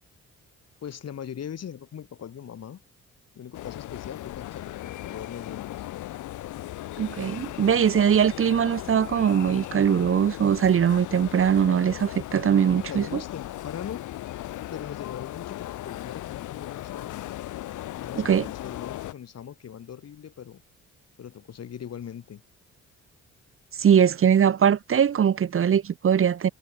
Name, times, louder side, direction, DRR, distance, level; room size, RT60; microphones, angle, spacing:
voice 1, 0.8-2.8 3.3-5.9 12.8-14.0 14.7-17.2 17.9-20.6 21.2-22.4, left 9 dB, 55° left, 4.2 m, -40 dB
sound 1, 3.5-19.1, left 15 dB, 80° left, 1.2 m, -37 dB
voice 2, 7.0-13.2 18.2-18.5 23.8-26.5, right 8 dB, 45° right, 1.1 m, -21 dB
cardioid pair, 90°, 30 cm